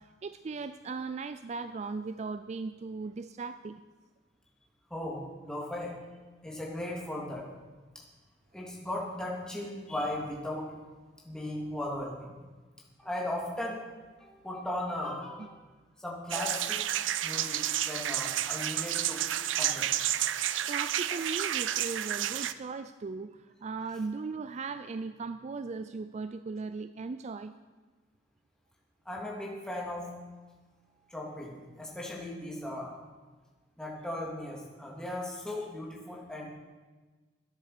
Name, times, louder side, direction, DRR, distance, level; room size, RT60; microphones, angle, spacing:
voice 1, 0.0-3.8 15.4-15.5 20.4-27.5, right 4 dB, 40° right, 11 dB, 0.4 m, -38 dB
voice 2, 4.9-5.9 6.4-7.5 8.5-10.7 11.2-12.4 13.0-13.8 14.2-15.5 16.0-16.8 17.2-19.2 19.6-19.9 29.0-30.1 31.1-32.9 33.8-36.5, left 1 dB, 5° left, -3 dB, 2.8 m, -37 dB
sound 1, 16.3-22.5, right 11 dB, 90° right, 0.5 m, -31 dB
13.0 x 9.9 x 6.7 m, 1.3 s
head